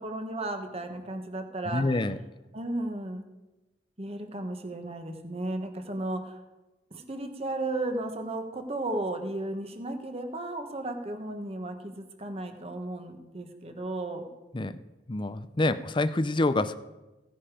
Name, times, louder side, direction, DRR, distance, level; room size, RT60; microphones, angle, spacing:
voice 1, 0.0-1.8 2.5-3.2 4.0-6.4 6.9-14.3, right 2 dB, 35° right, 6 dB, 1.6 m, -34 dB
voice 2, 1.7-2.2 14.5-14.8 15.1-16.8, left 2 dB, 25° left, 12 dB, 0.6 m, -27 dB
17.0 x 10.0 x 5.0 m, 1.1 s
head